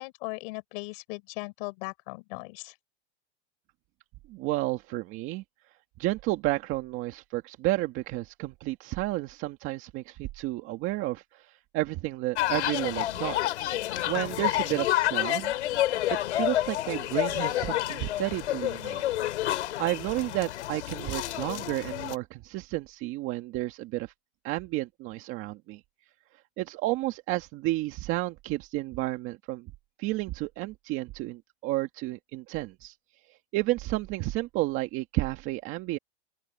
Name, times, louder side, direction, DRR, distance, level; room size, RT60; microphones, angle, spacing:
voice 1, 0.0-2.7, left 29 dB, 55° left, 4.4 m, -38 dB
voice 2, 4.3-5.4 6.0-13.4 14.1-15.5 16.1-19.0 19.8-24.1 24.4-25.8 26.6-29.7 30.0-32.9 33.5-36.0, right 18 dB, 40° right, 1.9 m, -31 dB
sound 1, 12.4-22.2, left 14 dB, 90° left, 2.9 m, -29 dB
open air
supercardioid pair, 150°, 33 cm